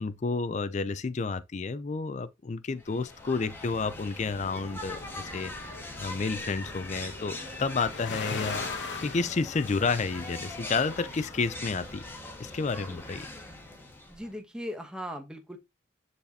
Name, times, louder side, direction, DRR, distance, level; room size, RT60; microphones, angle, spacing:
voice 1, 0.0-5.5 6.0-8.7 9.0-12.0 12.4-13.3, left 4 dB, 35° left, 0.4 m, -30 dB
sound 1, 2.8-14.4, left 2 dB, 10° left, 1.4 m, -41 dB
sound 2, 4.5-11.9, left 4 dB, 65° left, 1.0 m, -42 dB
voice 2, 14.1-15.6, equal, 5° right, 1.0 m, -38 dB
10.0 x 4.1 x 2.8 m
head